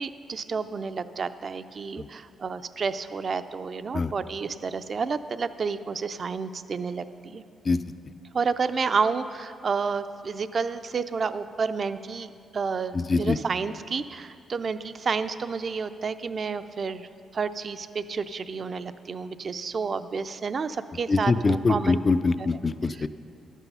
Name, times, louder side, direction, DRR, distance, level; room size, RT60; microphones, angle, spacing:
voice 1, 0.0-7.4 8.3-17.1 17.3-22.0 22.9-23.1, right 5 dB, 45° right, 11 dB, 0.4 m, -30 dB
voice 2, 12.9-13.4 21.1-23.1, left 3 dB, 35° left, 13 dB, 0.4 m, -23 dB
11.5 x 8.2 x 5.5 m, 2.4 s
cardioid pair, 90°, 0 cm